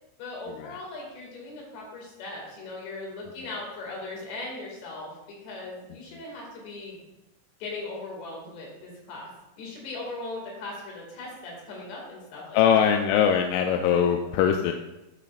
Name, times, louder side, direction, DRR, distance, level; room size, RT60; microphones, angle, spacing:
voice 1, 0.2-7.0 7.6-9.3 9.6-12.9, left 2 dB, 60° left, -2 dB, 4.3 m, -39 dB
voice 2, 12.5-14.7, left 8 dB, 85° left, 4 dB, 2.9 m, -22 dB
12.5 x 6.9 x 2.5 m, 0.99 s
omnidirectional pair, 5.8 m